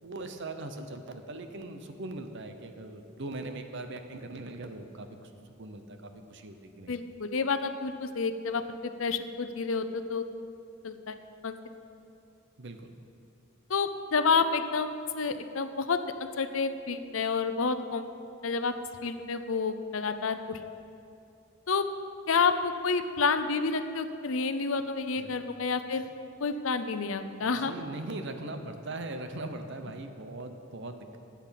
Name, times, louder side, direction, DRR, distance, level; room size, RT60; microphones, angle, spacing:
voice 1, 0.0-5.3 5.6-6.9 12.6-12.9 25.2-25.3 25.9-26.0 27.4-31.2, right 2 dB, 60° right, 7 dB, 0.9 m, -40 dB
voice 2, 6.9-10.2 10.8-11.2 11.4-11.6 13.7-18.1 18.4-18.7 19.0-20.6 21.7-21.9 22.3-26.0 26.4-27.7, left 4 dB, 75° left, 9 dB, 0.7 m, -29 dB
12.0 x 8.6 x 5.9 m, 2.7 s
head